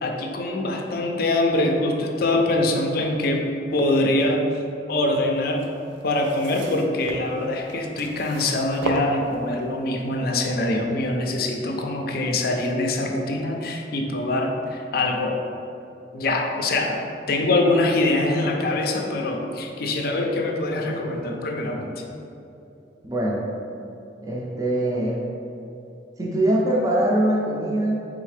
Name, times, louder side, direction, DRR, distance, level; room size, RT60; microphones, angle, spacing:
voice 1, 0.0-4.4 4.9-5.6 6.0-15.4 16.1-17.0 17.3-21.9, left 2 dB, 55° left, 2 dB, 0.4 m, -24 dB
sound 1, 5.5-9.7 10.5-10.6, right 2 dB, 90° right, 0.4 m, -34 dB
voice 2, 23.0-23.5 24.2-25.2 26.2-28.1, right 1 dB, 20° right, -3 dB, 0.4 m, -23 dB
3.9 x 3.6 x 3.2 m, 2.8 s
head